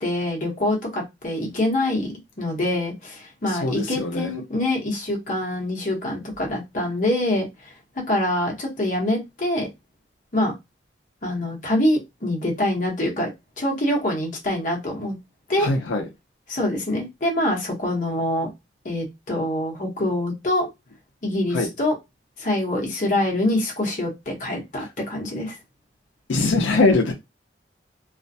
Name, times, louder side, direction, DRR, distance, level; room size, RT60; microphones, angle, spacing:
voice 1, 0.0-9.7 10.3-10.5 11.2-13.3 13.6-15.2 15.5-15.7 16.5-18.5 18.8-20.7 21.2-22.0 22.4-25.6, left 1 dB, 45° left, 0.9 m, -25 dB
voice 2, 3.6-4.3 15.6-16.1 21.5-21.7 24.8-24.9 26.3-27.1, left 3 dB, 90° left, 0.5 m, -21 dB
2.4 x 2.2 x 2.6 m
head